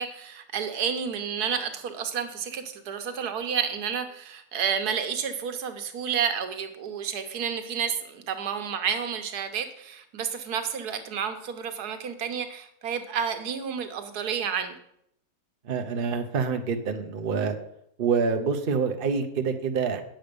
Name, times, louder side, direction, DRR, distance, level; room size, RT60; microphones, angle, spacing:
voice 1, 0.0-14.7, right 7 dB, 90° right, 7 dB, 1.5 m, -30 dB
voice 2, 15.6-17.5 18.0-20.0, right 5 dB, 45° right, 6 dB, 0.9 m, -26 dB
8.9 x 6.5 x 5.2 m, 0.73 s
omnidirectional pair, 1.6 m